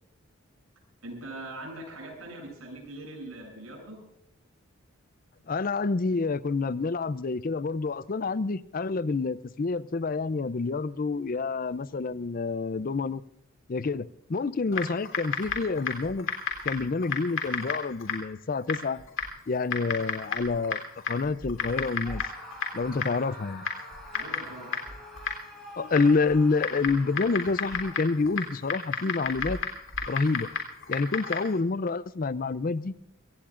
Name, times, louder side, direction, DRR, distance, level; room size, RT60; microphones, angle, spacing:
voice 1, 1.0-4.0 24.1-24.7, right 1 dB, 80° right, 7.8 m, -41 dB
voice 2, 5.5-13.2 13.7-16.3 16.6-19.0 19.5-20.8 21.1-22.2 22.7-23.7 25.8-29.6 30.1-30.5 30.9-32.9, left 4 dB, 40° left, 0.4 m, -28 dB
Typing, 14.7-31.6, left 5 dB, 65° left, 3.4 m, -34 dB
Screaming, 22.0-28.3, equal, ahead, 6.2 m, -46 dB
25.0 x 17.5 x 2.5 m
head